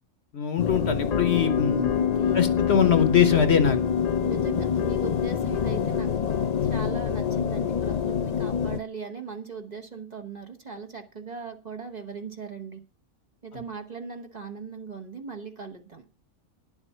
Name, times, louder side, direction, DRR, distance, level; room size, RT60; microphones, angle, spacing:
voice 1, 0.3-1.9 2.3-3.8 13.5-13.6, left 8 dB, 55° left, 10 dB, 1.2 m, -22 dB
sound 1, 0.6-8.8, left 7 dB, 75° left, 0.3 m, -25 dB
voice 2, 1.7-2.5 4.2-12.8 13.4-16.1, right 5 dB, 35° right, 4 dB, 1.1 m, -39 dB
10.5 x 7.2 x 5.6 m, 0.37 s
omnidirectional pair, 1.4 m